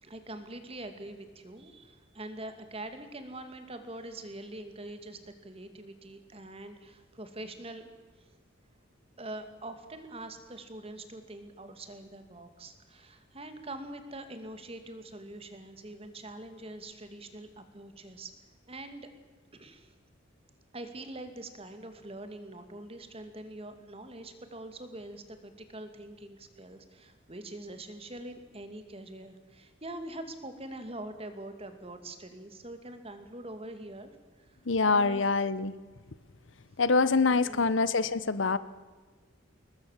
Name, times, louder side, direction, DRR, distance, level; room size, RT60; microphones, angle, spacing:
voice 1, 0.0-7.9 8.2-8.4 9.2-18.3 18.7-19.1 19.5-20.0 20.7-34.1 34.4-34.6 34.9-35.3 37.3-37.7, right 1 dB, 30° right, 8 dB, 2.4 m, -44 dB
voice 2, 34.7-35.7 36.8-38.6, left 4 dB, 75° left, 16 dB, 1.0 m, -25 dB
21.0 x 21.0 x 7.4 m, 1.4 s
head